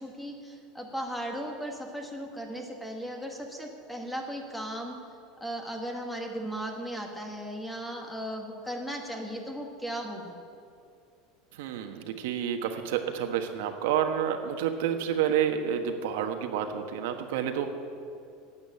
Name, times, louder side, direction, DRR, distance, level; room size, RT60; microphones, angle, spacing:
voice 1, 0.0-5.0 5.4-10.4, equal, 5° left, 2 dB, 1.2 m, -36 dB
voice 2, 11.5-17.7, right 9 dB, 75° right, 6 dB, 1.3 m, -29 dB
12.5 x 8.9 x 8.6 m, 2.5 s
supercardioid pair, 175°, 0 cm